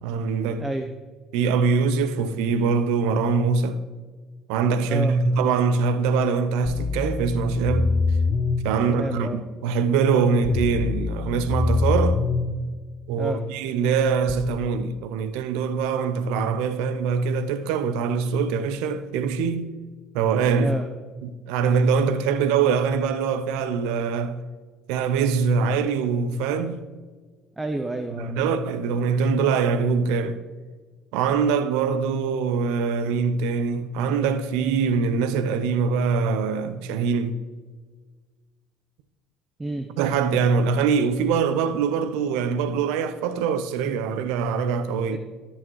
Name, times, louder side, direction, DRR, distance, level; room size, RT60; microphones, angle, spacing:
voice 1, 0.0-0.6 1.3-3.8 4.5-7.9 8.6-12.2 13.1-19.7 20.1-20.7 21.2-24.4 24.9-26.9 28.2-30.4 31.1-37.4 40.0-45.2, right 5 dB, 75° right, 0.6 m, -23 dB
sound 1, 6.7-8.6 10.5-12.5 14.3-14.4, left 4 dB, 40° left, 0.9 m, -24 dB
voice 2, 8.9-9.4 13.2-13.4 20.6-20.9 27.6-28.4 39.6-39.9 45.1-45.2, right 2 dB, 20° right, 0.7 m, -29 dB
13.5 x 6.3 x 3.1 m
hypercardioid pair, 60°, 0 cm